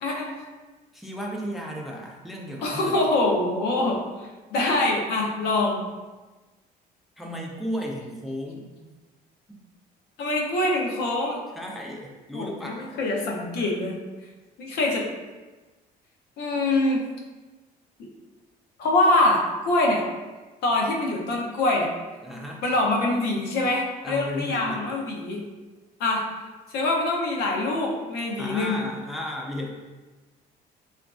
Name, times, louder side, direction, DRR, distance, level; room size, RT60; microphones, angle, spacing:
voice 1, 0.0-0.3 2.6-4.0 4.5-5.8 10.2-11.4 12.3-14.0 14.6-15.1 16.4-17.0 18.8-20.0 20.6-21.9 22.6-25.4 26.0-26.2 26.7-28.8, left 2 dB, 80° left, -1 dB, 0.6 m, -24 dB
voice 2, 0.9-3.0 7.2-8.9 9.5-9.6 11.6-13.0 22.2-22.6 24.0-24.8 28.4-29.7, equal, ahead, -1 dB, 0.4 m, -34 dB
2.9 x 2.4 x 2.4 m, 1.2 s
cardioid pair, 110°, 17 cm